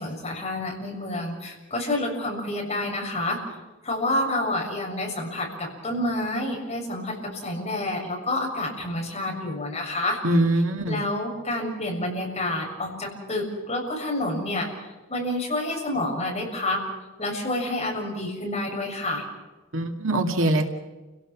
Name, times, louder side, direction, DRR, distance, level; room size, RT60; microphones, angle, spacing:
voice 1, 0.0-3.4 3.8-10.2 10.9-14.7 15.1-16.8 17.2-19.2, left 1 dB, 30° left, 0 dB, 7.1 m, -28 dB
voice 2, 10.2-11.0 19.7-20.7, right 1 dB, 75° right, 4 dB, 2.3 m, -22 dB
30.0 x 17.5 x 6.1 m, 1.2 s
head